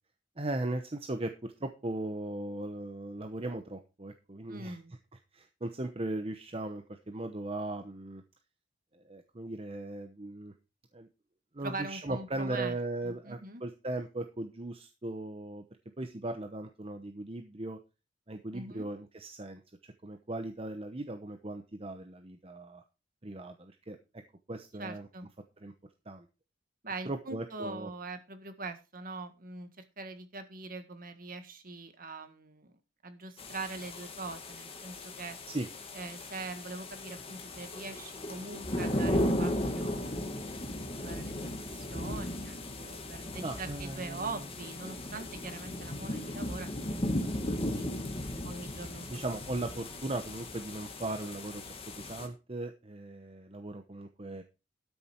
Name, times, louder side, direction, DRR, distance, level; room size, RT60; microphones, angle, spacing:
voice 1, 0.4-4.8 5.3-8.2 8.9-10.5 10.9-11.1 11.5-15.6 16.0-17.8 18.3-22.8 23.2-24.0 24.5-25.1 25.6-25.7 26.1-26.3 27.1-27.9 35.5-35.7 43.4-44.4 49.1-54.4, right 2 dB, 30° right, 6 dB, 0.9 m, -38 dB
voice 2, 4.5-4.9 11.6-12.8 13.0-13.6 18.5-18.9 24.8-25.3 26.8-32.7 33.0-35.4 35.9-40.5 41.0-41.4 41.7-47.1 47.3-47.9 48.4-49.1, right 3 dB, 50° right, 9 dB, 1.7 m, -42 dB
sound 1, 33.4-52.3, left 1 dB, 30° left, 1.8 m, -36 dB
12.5 x 6.9 x 4.5 m, 0.30 s
head